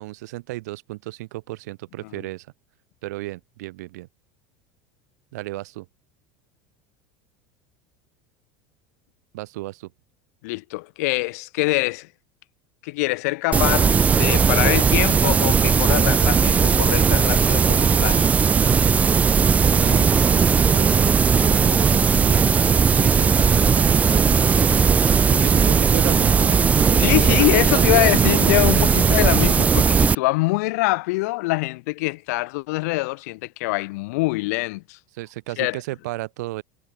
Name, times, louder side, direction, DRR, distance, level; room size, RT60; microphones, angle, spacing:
voice 1, 0.0-2.5 3.0-4.1 5.3-5.9 9.3-9.9 19.7-21.1 21.4-24.7 25.3-28.1 28.7-28.9 35.1-36.6, right 19 dB, 85° right, 1.6 m, -34 dB
voice 2, 10.4-12.1 12.8-18.3 27.0-35.0 35.6-35.8, left 24 dB, 75° left, 0.4 m, -24 dB
sound 1, 13.5-30.2, right 6 dB, 15° right, 0.5 m, -17 dB
supercardioid pair, 155°, 9 cm